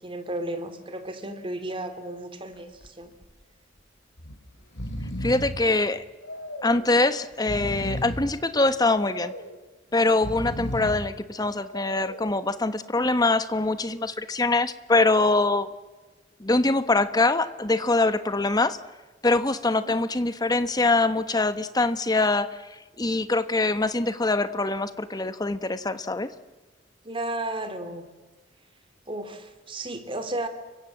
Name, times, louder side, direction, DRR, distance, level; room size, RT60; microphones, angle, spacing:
voice 1, 0.0-3.1 19.7-19.9 27.0-28.1 29.1-30.5, right 1 dB, 30° right, 9 dB, 2.7 m, -33 dB
Breathing, 2.5-2.9 3.2-3.3 4.2-4.4 4.6-5.6 6.2-6.9 7.3-8.3 8.9-9.6 10.1-11.1 11.7-12.3, equal, 85° left, 5.3 m, -34 dB
voice 2, 5.2-6.0 6.6-9.3 9.9-15.7 16.4-18.8 19.2-22.6 23.0-26.3, left 2 dB, 20° left, 11 dB, 1.2 m, -23 dB
30.0 x 24.0 x 7.5 m, 1.2 s
head